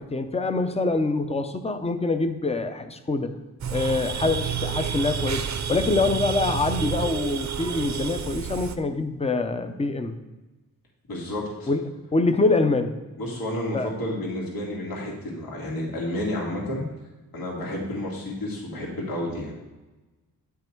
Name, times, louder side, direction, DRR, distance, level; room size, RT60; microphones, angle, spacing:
voice 1, 0.0-3.4 3.7-10.2 11.7-11.8 12.1-13.0 13.7-13.9, left 3 dB, 20° left, 8 dB, 0.6 m, -25 dB
sound 1, 3.6-8.8, right 7 dB, 55° right, 0.7 m, -29 dB
voice 2, 11.1-11.7 13.2-16.8 17.3-19.5, left 1 dB, 80° left, -3 dB, 2.3 m, -31 dB
9.7 x 5.7 x 4.6 m, 1.1 s
wide cardioid pair, 135°, 35 cm